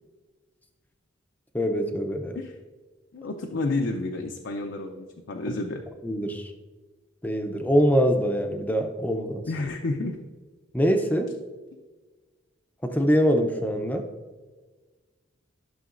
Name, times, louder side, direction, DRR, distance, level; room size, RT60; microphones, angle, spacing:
voice 1, 1.5-2.4 5.5-5.6 6.0-6.5 7.2-9.4 10.7-11.3 12.8-14.1, equal, 10° left, 4 dB, 0.5 m, -24 dB
voice 2, 3.1-5.8 9.4-10.2, left 2 dB, 65° left, 3 dB, 0.5 m, -30 dB
12.5 x 6.3 x 2.5 m, 1.3 s
head